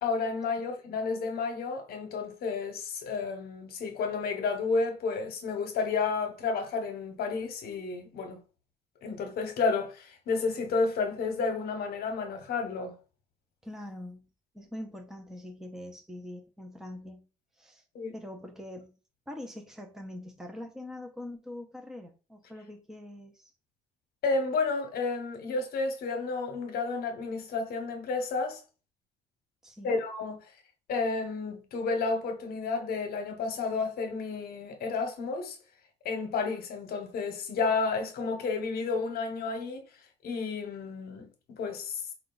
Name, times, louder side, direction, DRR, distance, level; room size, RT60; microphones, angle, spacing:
voice 1, 0.0-8.4 9.0-12.9 17.9-18.1 24.2-28.6 29.8-30.4 30.9-35.6 36.0-39.8 40.2-42.0, left 4 dB, 65° left, 1.0 m, -31 dB
voice 2, 13.6-14.3 14.5-17.3 17.6-17.8 18.1-19.0 19.3-23.5 29.6-30.0, left 1 dB, 5° right, 0.7 m, -43 dB
4.4 x 2.4 x 3.9 m
cardioid pair, 110°, 17 cm